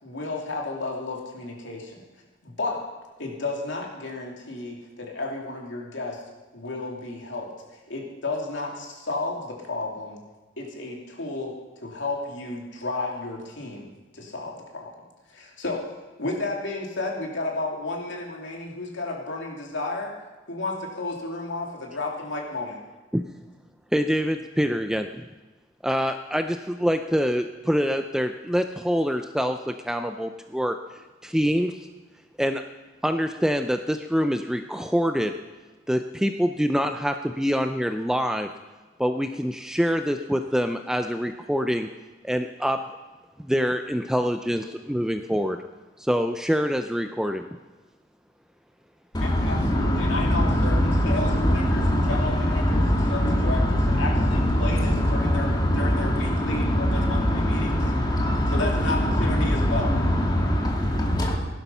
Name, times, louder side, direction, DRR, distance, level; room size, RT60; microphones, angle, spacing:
voice 1, 0.0-2.0 2.4-2.9 3.2-6.2 6.5-7.5 7.9-10.2 10.6-13.9 14.1-14.9 15.3-15.9 16.2-20.1 20.5-22.8 49.2-59.9, left 2 dB, 65° left, 0 dB, 2.9 m, -32 dB
voice 2, 23.9-25.2 25.8-30.7 31.2-31.9 32.4-32.6 33.0-35.3 35.9-38.5 39.0-41.9 42.2-42.8 43.4-45.6 46.0-47.5, equal, 5° right, 7 dB, 0.5 m, -25 dB
voice 3, 49.1-61.4, equal, 20° left, -1 dB, 2.7 m, -22 dB
17.0 x 11.5 x 5.6 m, 1.2 s
head